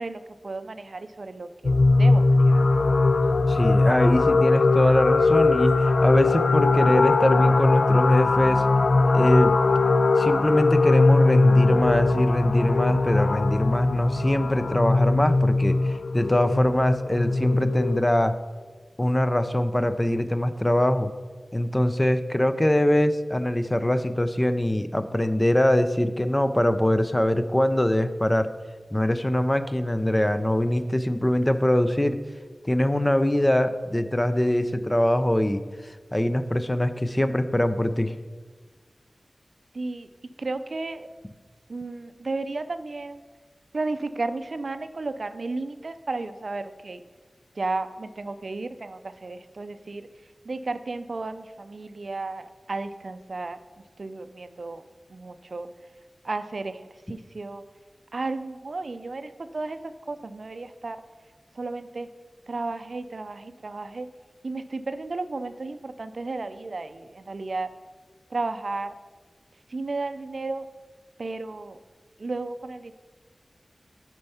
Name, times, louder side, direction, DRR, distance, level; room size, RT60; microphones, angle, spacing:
voice 1, 0.0-2.6 39.7-40.1 40.4-41.1 41.7-43.2 43.7-47.0 47.5-50.1 50.4-53.6 54.0-54.8 55.1-55.7 56.2-57.6 58.1-61.0 61.5-62.1 62.5-64.1 64.4-67.7 68.3-68.9 69.7-70.7 71.2-71.8 72.2-72.9, right 3 dB, 65° right, 11 dB, 0.4 m, -33 dB
sound 1, 1.6-18.0, left 3 dB, 75° left, 0.3 m, -20 dB
voice 2, 3.5-8.6 9.1-9.6 10.2-18.4 19.0-21.1 21.5-28.5 28.9-32.2 32.6-35.6 36.1-38.3, left 1 dB, 15° left, 10 dB, 0.5 m, -23 dB
8.8 x 4.5 x 5.6 m, 1.4 s
wide cardioid pair, 70°, 0 cm